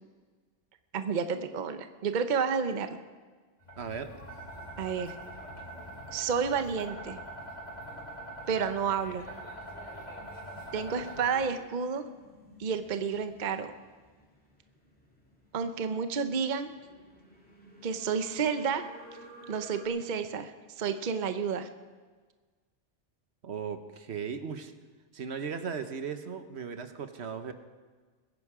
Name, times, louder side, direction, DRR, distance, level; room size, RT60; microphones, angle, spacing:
voice 1, 0.9-2.9 4.8-5.1 6.1-7.2 8.5-9.3 10.7-12.0 12.6-13.7 15.5-16.7 17.8-18.9 19.5-21.7, right 6 dB, 45° right, 9 dB, 0.8 m, -30 dB
sound 1, 3.6-11.4, right 1 dB, 35° left, 3.3 m, -44 dB
voice 2, 3.8-4.1 23.4-24.7 25.1-27.5, right 6 dB, 70° right, 9 dB, 1.2 m, -37 dB
sound 2, 9.5-19.9, right 1 dB, 5° left, 2.5 m, -55 dB
22.0 x 10.0 x 4.9 m, 1.4 s
omnidirectional pair, 1.2 m